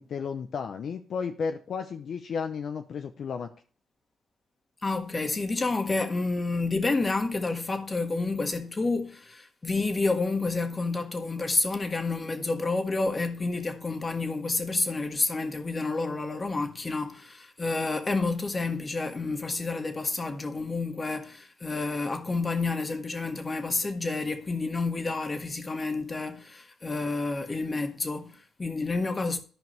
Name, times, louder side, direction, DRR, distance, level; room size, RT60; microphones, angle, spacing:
voice 1, 0.0-3.5, left 6 dB, 55° left, 0.7 m, -33 dB
voice 2, 4.8-29.4, left 3 dB, 25° left, 1.5 m, -29 dB
13.5 x 5.2 x 3.1 m
cardioid pair, 90°, 0 cm